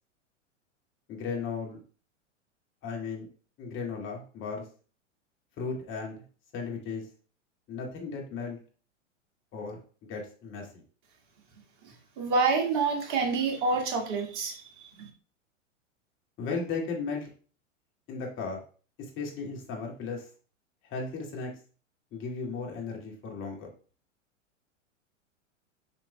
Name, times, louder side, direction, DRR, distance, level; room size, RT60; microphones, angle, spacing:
voice 1, 1.1-1.8 2.8-3.2 3.6-4.6 5.6-6.2 6.5-7.1 7.7-8.6 9.5-9.8 10.1-10.7 16.4-17.3 18.1-18.6 19.2-20.3 20.8-21.5 22.1-23.7, left 4 dB, 30° left, 0 dB, 2.1 m, -35 dB
voice 2, 11.8-15.1, right 4 dB, 45° right, 1 dB, 1.9 m, -28 dB
7.3 x 5.8 x 2.2 m, 0.39 s
figure-of-eight pair, 95°, 38 cm